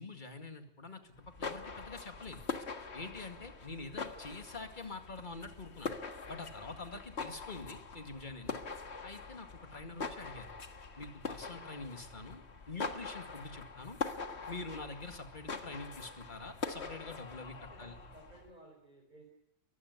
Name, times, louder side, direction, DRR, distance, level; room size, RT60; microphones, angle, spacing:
voice 1, 0.0-2.5 2.9-6.0 6.3-8.6 9.0-10.5 11.0-14.0 14.5-17.9, left 3 dB, 45° left, 6 dB, 2.3 m, -46 dB
sound 1, 1.2-18.5, left 4 dB, 70° left, 1.9 m, -43 dB
voice 2, 17.6-19.3, right 1 dB, 40° right, 0 dB, 4.3 m, -60 dB
22.5 x 15.0 x 9.7 m, 0.80 s
omnidirectional pair, 1.2 m